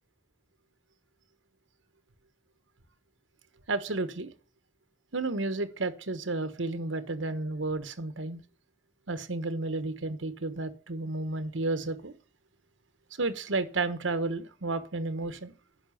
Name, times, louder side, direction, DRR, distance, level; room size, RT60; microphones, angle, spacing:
voice 1, 3.7-4.3 5.1-8.4 9.1-12.1 13.2-15.5, right 2 dB, 90° right, 1.2 m, -32 dB
10.0 x 6.1 x 7.1 m
head